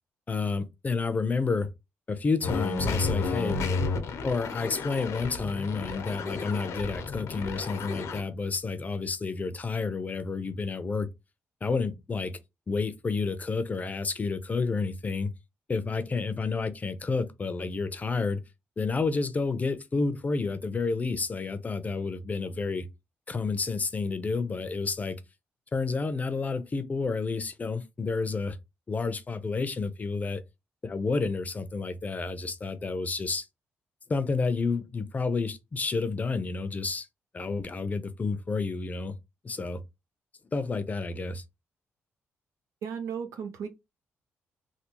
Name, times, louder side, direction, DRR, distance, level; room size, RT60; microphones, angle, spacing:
voice 1, 0.3-1.7 2.1-3.8 4.2-11.1 11.6-12.4 12.7-15.3 15.7-18.4 18.8-22.9 23.3-25.2 25.7-28.6 28.9-30.4 30.8-33.5 34.1-37.1 37.3-39.1 39.4-39.8 40.5-41.4, left 4 dB, 30° left, 0.6 m, -30 dB
sound 1, 2.4-8.2, left 4 dB, 80° left, 0.8 m, -32 dB
voice 2, 42.8-43.7, right 7 dB, 85° right, 0.7 m, -35 dB
3.3 x 2.2 x 3.0 m
cardioid pair, 90°, 5 cm